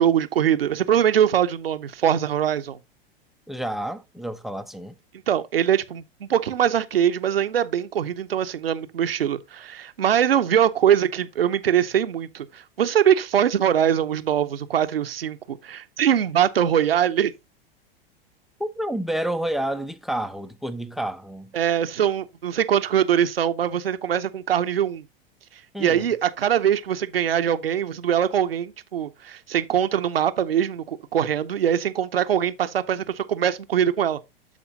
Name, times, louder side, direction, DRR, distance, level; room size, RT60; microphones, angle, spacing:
voice 1, 0.0-2.8 5.3-17.3 21.5-25.0 25.8-34.2, right 9 dB, 75° right, 0.8 m, -22 dB
voice 2, 3.5-4.9 18.6-21.5 25.7-26.1, right 1 dB, ahead, 0.6 m, -29 dB
12.5 x 4.3 x 2.8 m
figure-of-eight pair, 90°, 29 cm